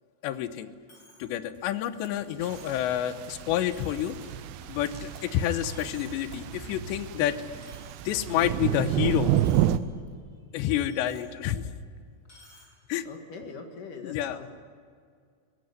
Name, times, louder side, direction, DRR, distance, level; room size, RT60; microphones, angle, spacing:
voice 1, 0.2-0.7 1.2-4.2 4.7-7.4 8.0-9.3 10.5-11.7 12.9-13.1 14.0-14.4, left 11 dB, 85° left, 11 dB, 3.2 m, -29 dB
Coin (dropping), 0.9-1.3 1.7-1.8 2.4-2.9 3.4-3.5 3.7-4.3 4.7-5.3 5.6-6.3 6.6-6.9 7.6-8.8 9.2-9.7 10.1-10.2 10.9-11.3 12.2-12.7, left 1 dB, 20° left, 6.0 m, -55 dB
sound 1, 1.5-7.7, right 2 dB, 45° right, 5.5 m, -50 dB
sound 2, 2.4-9.8, right 12 dB, 80° right, 2.4 m, -30 dB
voice 2, 13.1-14.5, left 4 dB, 55° left, 4 dB, 3.1 m, -42 dB
22.5 x 18.0 x 9.6 m, 2.1 s
omnidirectional pair, 5.0 m